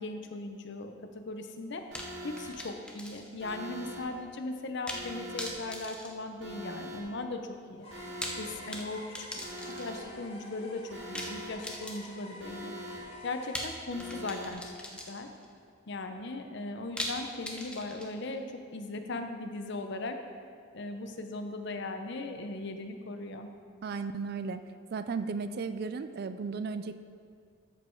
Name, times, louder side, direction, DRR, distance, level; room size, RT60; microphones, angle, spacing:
voice 1, 0.0-1.8 2.2-7.9 8.4-9.0 9.6-12.7 13.2-14.6 15.1-15.3 15.9-18.4 18.7-20.2 20.7-23.5, left 2 dB, 55° left, 6 dB, 0.7 m, -38 dB
sound 1, 1.9-3.5 3.8-3.9 4.9-5.1 5.4-6.9 8.0-10.1 11.1-12.3 13.5-15.5 17.0-18.4, left 1 dB, 5° left, 0.7 m, -41 dB
Alarm, 1.9-2.5 3.4-4.0 4.9-5.5 6.4-7.0 7.9-8.5 9.4-10.0 10.9-11.5 12.4-13.0 13.9-14.5, equal, 70° right, 1.9 m, -43 dB
sound 2, 7.8-13.5, left 1 dB, 30° left, 1.8 m, -49 dB
voice 2, 23.8-24.6 24.9-27.0, right 4 dB, 50° right, 11 dB, 0.4 m, -35 dB
13.0 x 5.5 x 4.5 m, 2.2 s
head